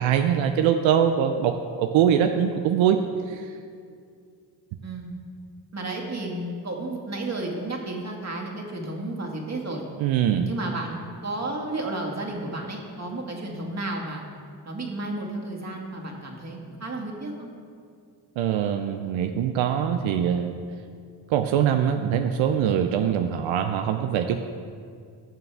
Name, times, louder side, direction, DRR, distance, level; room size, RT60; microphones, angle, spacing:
voice 1, 0.0-3.0 3.3-3.5 10.0-10.5 18.4-20.5 21.3-24.4, right 9 dB, 80° right, 6 dB, 0.6 m, -23 dB
voice 2, 4.8-5.2 5.7-9.8 10.3-14.2 14.6-17.5, right 2 dB, 35° right, -1 dB, 2.1 m, -32 dB
15.0 x 6.8 x 3.4 m, 2.3 s
supercardioid pair, 55°, 46 cm